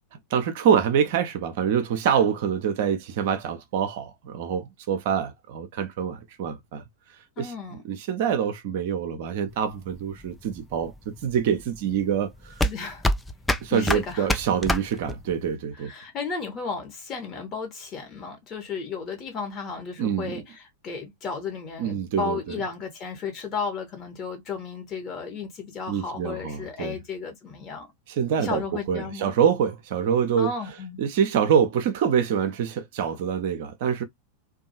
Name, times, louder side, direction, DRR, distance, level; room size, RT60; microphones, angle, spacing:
voice 1, 0.3-6.8 7.4-7.5 7.9-12.5 13.6-15.9 20.0-20.4 21.8-22.6 25.9-27.0 28.1-30.5 31.0-34.0, right 8 dB, 50° right, 0.5 m, -25 dB
voice 2, 7.4-7.8 12.6-13.1 13.7-14.3 15.7-27.9 28.4-29.4 30.4-31.0, left 5 dB, 30° left, 1.1 m, -34 dB
sound 1, 9.5-15.5, left 1 dB, 5° left, 0.3 m, -27 dB
2.6 x 2.3 x 2.7 m
figure-of-eight pair, 90°, 0 cm